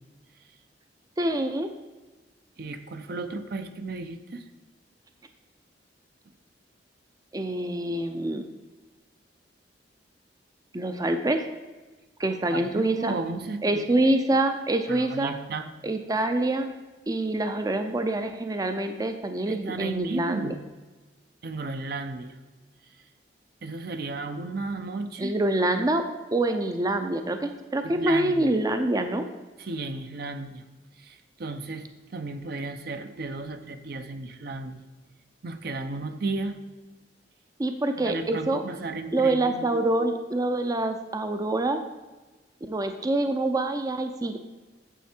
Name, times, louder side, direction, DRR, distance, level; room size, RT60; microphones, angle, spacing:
voice 1, 1.2-1.7 7.3-8.4 10.7-11.4 12.2-13.1 13.6-15.3 15.8-16.7 17.1-20.5 25.2-26.0 26.3-29.3 37.6-38.6 39.1-41.8 42.7-44.4, right 2 dB, 20° right, 7 dB, 0.4 m, -26 dB
voice 2, 2.6-4.4 12.5-14.0 14.9-15.7 19.5-20.6 21.4-22.4 23.6-25.3 27.8-28.5 29.6-30.6 31.0-34.8 35.4-36.6 38.0-39.7, right 3 dB, 60° right, 8 dB, 0.7 m, -34 dB
9.1 x 7.3 x 4.4 m, 1.2 s
head